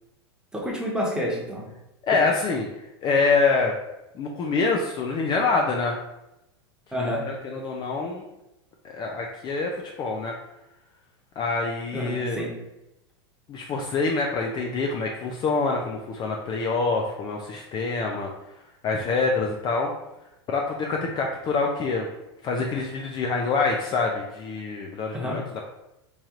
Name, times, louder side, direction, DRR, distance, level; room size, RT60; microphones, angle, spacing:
voice 1, 0.5-1.6 6.9-7.3 11.9-12.5 25.1-25.4, equal, 5° right, -3 dB, 1.1 m, -28 dB
voice 2, 2.1-2.7 3.0-3.7 4.1-6.0 6.9-8.2 8.8-10.3 11.4-12.4 13.5-18.3 18.8-19.9 20.5-22.1 22.4-25.7, left 4 dB, 30° left, 1 dB, 0.5 m, -26 dB
3.1 x 2.9 x 3.6 m, 0.91 s
hypercardioid pair, 110°, 14 cm